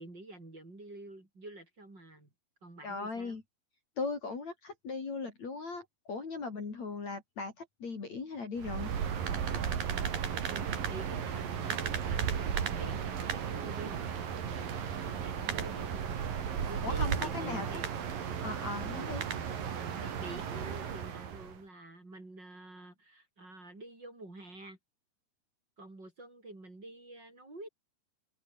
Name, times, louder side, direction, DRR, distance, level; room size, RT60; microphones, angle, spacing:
voice 1, 0.0-2.3 2.6-3.4 10.5-17.9 19.9-24.8 25.8-27.7, right 2 dB, 25° right, 6.3 m, -48 dB
voice 2, 2.8-3.4 4.0-8.9 16.8-17.7 18.4-19.2, left 4 dB, 45° left, 5.1 m, -38 dB
sound 1, 8.6-21.6, right 8 dB, 60° right, 4.5 m, -35 dB
open air
omnidirectional pair, 4.6 m